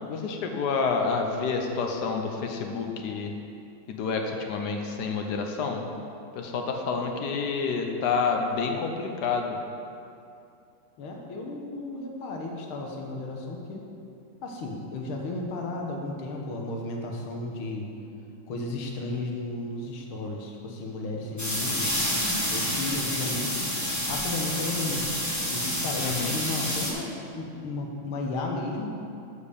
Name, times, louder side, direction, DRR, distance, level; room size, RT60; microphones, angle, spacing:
voice 1, 0.1-3.3 3.9-5.9 6.3-9.6 26.0-26.3, left 5 dB, 65° left, 3 dB, 1.1 m, -28 dB
voice 2, 11.0-13.8 14.4-17.9 18.5-22.0 22.5-25.1 25.5-29.0, left 2 dB, 80° left, 1 dB, 1.8 m, -34 dB
sound 1, 21.4-26.9, equal, 15° left, 0.6 m, -29 dB
7.3 x 5.0 x 6.6 m, 2.6 s
omnidirectional pair, 2.3 m